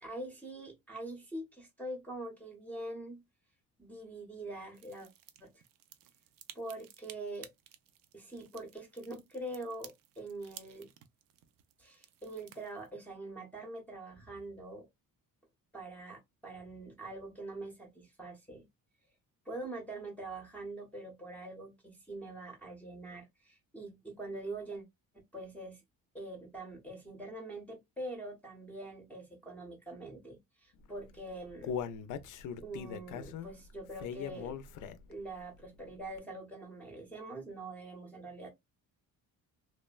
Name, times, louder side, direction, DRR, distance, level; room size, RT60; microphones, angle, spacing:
voice 1, 0.0-3.2 3.8-5.1 5.4-5.5 6.6-7.5 8.1-10.9 11.8-14.9 15.7-18.6 19.5-24.8 25.3-25.8 26.1-31.8 32.6-34.5 35.1-38.5, right 2 dB, 5° left, 0.6 m, -44 dB
sound 1, 4.7-12.9, right 11 dB, 70° right, 0.5 m, -56 dB
Human voice, 31.0-35.2 35.6-35.7 36.2-36.3, left 7 dB, 60° left, 0.4 m, -40 dB
3.1 x 2.1 x 2.2 m
cardioid pair, 145°, 35 cm